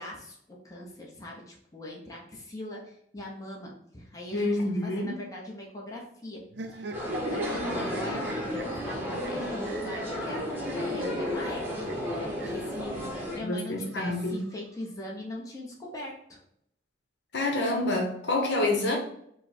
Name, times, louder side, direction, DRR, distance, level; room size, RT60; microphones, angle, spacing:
voice 1, 0.0-6.4 6.7-12.0 12.3-16.4, left 1 dB, 20° left, -3 dB, 0.9 m, -41 dB
voice 2, 4.3-5.1 13.4-14.4 17.3-19.0, left 2 dB, 65° left, 0 dB, 1.0 m, -27 dB
sound 1, 6.5-12.7 13.7-14.8, right 2 dB, 65° right, 0.5 m, -42 dB
sound 2, 6.9-13.4, equal, 10° right, 0.9 m, -32 dB
5.0 x 2.2 x 4.2 m, 0.71 s
head